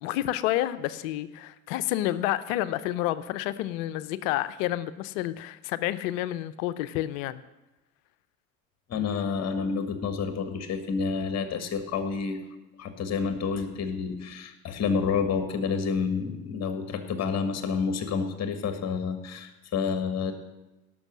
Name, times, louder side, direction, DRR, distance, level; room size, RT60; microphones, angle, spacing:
voice 1, 0.0-7.4 9.0-9.1, left 14 dB, 65° left, 15 dB, 0.7 m, -29 dB
voice 2, 8.9-12.4 12.8-20.3, left 5 dB, 35° left, 8 dB, 1.6 m, -29 dB
17.5 x 6.3 x 6.2 m, 1.0 s
hypercardioid pair, 65°, 43 cm